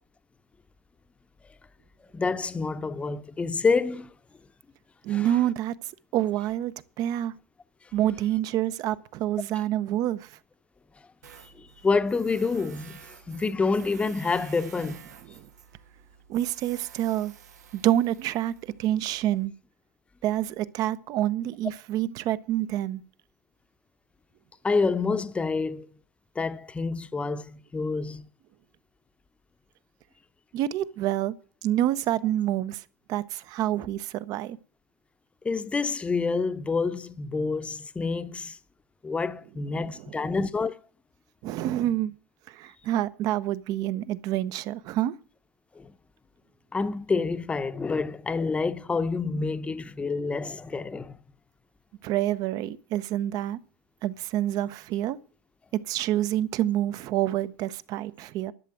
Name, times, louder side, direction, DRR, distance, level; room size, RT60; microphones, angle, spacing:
voice 1, 2.1-4.1 5.1-5.3 7.8-7.9 11.4-15.0 24.6-25.9 26.3-28.3 35.4-38.6 39.0-40.8 45.7-45.9 46.7-51.2, left 4 dB, 15° left, 0.8 m, -28 dB
voice 2, 5.0-7.3 7.9-10.3 15.4-15.5 16.3-17.3 17.7-19.5 20.2-23.0 30.5-31.4 31.6-32.8 33.1-34.6 41.4-42.1 42.5-45.1 52.0-53.6 54.0-55.2 55.7-58.5, right 12 dB, 45° right, 0.7 m, -27 dB
Tools, 11.2-19.5, right 8 dB, 90° right, 1.3 m, -50 dB
11.5 x 6.8 x 7.8 m
hypercardioid pair, 115°, 9 cm